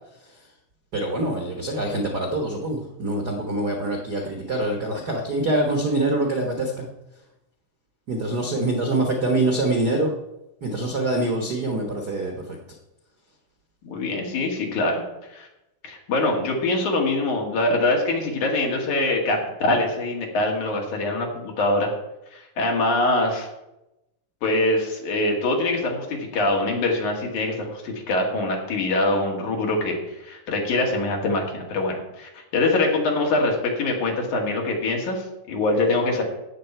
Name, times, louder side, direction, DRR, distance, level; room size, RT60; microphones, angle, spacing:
voice 1, 0.9-6.9 8.1-10.1 10.6-12.6, right 2 dB, 85° right, 2 dB, 0.8 m, -25 dB
voice 2, 13.8-15.0 15.3-15.5 15.8-21.9 22.3-23.5 24.4-30.0 30.2-36.2, left 2 dB, 65° left, 0 dB, 3.4 m, -24 dB
17.0 x 6.6 x 4.5 m, 0.92 s
omnidirectional pair, 3.7 m